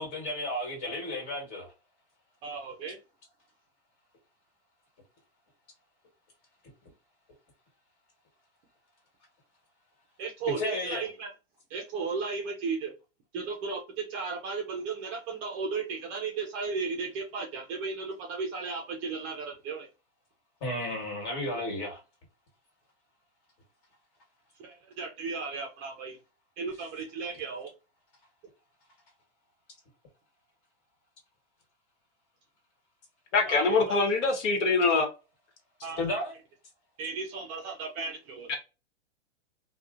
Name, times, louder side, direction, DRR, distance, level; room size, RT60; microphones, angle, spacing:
voice 1, 0.0-1.7 10.6-11.0 20.6-22.0 36.0-36.3, left 1 dB, 45° left, 1.5 m, -33 dB
voice 2, 2.4-3.0 10.2-11.3 11.7-12.9 13.3-19.9 24.6-26.2 26.6-27.7 33.5-34.0 35.8-36.0 37.0-38.5, right 4 dB, 25° right, 0.4 m, -35 dB
voice 3, 33.3-35.1, left 3 dB, 80° left, 1.0 m, -24 dB
2.7 x 2.1 x 2.4 m
hypercardioid pair, 145°, 36 cm